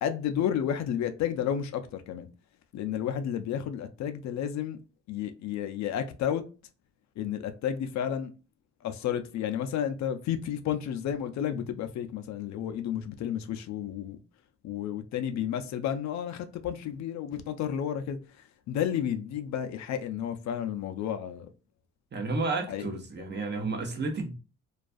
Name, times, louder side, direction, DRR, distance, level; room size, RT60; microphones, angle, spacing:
voice 1, 0.0-2.3 2.7-4.8 5.1-6.4 7.2-8.3 8.8-14.2 14.6-21.5 22.7-23.0, left 9 dB, 65° left, 0.4 m, -32 dB
voice 2, 22.1-24.3, right 3 dB, 35° right, 0.7 m, -31 dB
2.3 x 2.3 x 2.4 m
cardioid pair, 90°, 30 cm